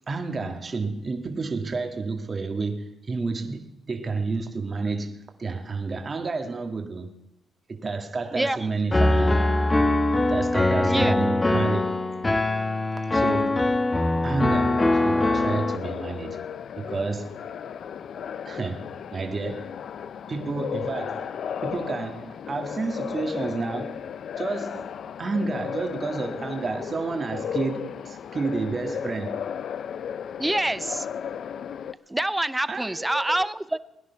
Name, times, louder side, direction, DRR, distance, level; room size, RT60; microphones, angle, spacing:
voice 1, 0.1-7.1 7.7-9.4 10.3-11.8 13.1-13.7 14.2-16.5 16.8-17.5 18.5-19.8 20.3-24.0 24.4-24.9 25.2-29.5 32.7-33.4, right 3 dB, 35° right, 1.7 m, -30 dB
Piano, 8.9-15.8, left 2 dB, 20° left, 1.1 m, -22 dB
voice 2, 10.8-11.2 30.4-31.1 32.1-33.8, right 1 dB, 10° right, 0.7 m, -26 dB
sound 1, 14.5-31.9, left 8 dB, 60° left, 0.6 m, -35 dB
19.5 x 10.5 x 5.8 m
cardioid pair, 90°, 0 cm